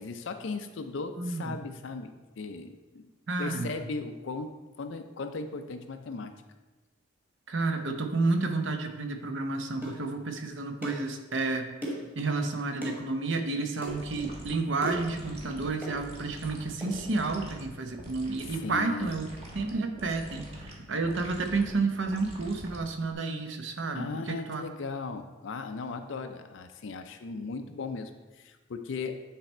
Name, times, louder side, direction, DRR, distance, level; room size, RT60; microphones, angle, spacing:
voice 1, 0.0-3.1 3.4-6.3 18.4-19.1 23.9-29.2, left 4 dB, 60° left, 7 dB, 0.4 m, -37 dB
voice 2, 1.2-1.6 3.3-3.8 7.5-11.7 12.1-19.3 19.5-24.6, right 3 dB, 60° right, 5 dB, 0.8 m, -31 dB
sound 1, 9.8-10.0 10.8-11.1 11.8-12.1 12.8-13.0 13.8-14.0 14.8-15.1 15.8-16.0 16.8-16.9, right 1 dB, 10° right, 1.4 m, -36 dB
sound 2, 13.9-23.1, equal, 30° right, 1.1 m, -45 dB
8.9 x 3.4 x 4.3 m, 1.2 s
head